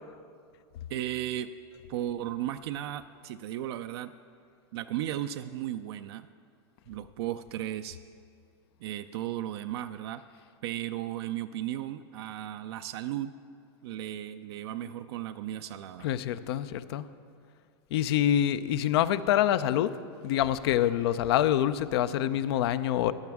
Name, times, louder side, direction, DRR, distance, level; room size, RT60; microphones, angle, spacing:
voice 1, 0.9-1.5 1.9-4.1 4.7-6.3 6.9-8.0 8.8-10.2 10.6-13.3 13.8-16.1, right 12 dB, 70° right, 9 dB, 0.4 m, -35 dB
voice 2, 16.0-17.0 17.9-19.9 20.2-23.1, left 11 dB, 70° left, 14 dB, 0.5 m, -26 dB
14.5 x 10.5 x 3.5 m, 2.3 s
hypercardioid pair, 115°, 14 cm